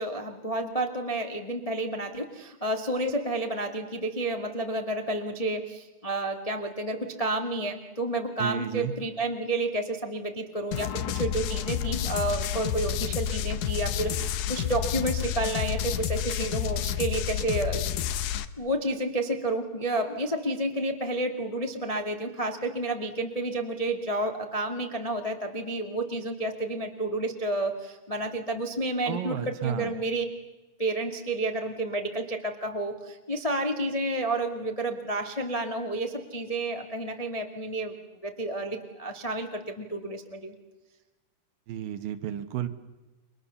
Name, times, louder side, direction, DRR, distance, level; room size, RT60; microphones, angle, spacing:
voice 1, 0.0-17.8 18.6-30.2 30.8-37.9 38.2-40.5, right 2 dB, 30° left, 3 dB, 0.6 m, -30 dB
voice 2, 8.4-8.9 29.1-29.9 41.7-42.7, right 10 dB, 70° right, 9 dB, 2.7 m, -32 dB
sound 1, 10.7-18.5, left 10 dB, 75° left, 1.8 m, -30 dB
30.0 x 24.0 x 7.1 m, 1.1 s
omnidirectional pair, 4.6 m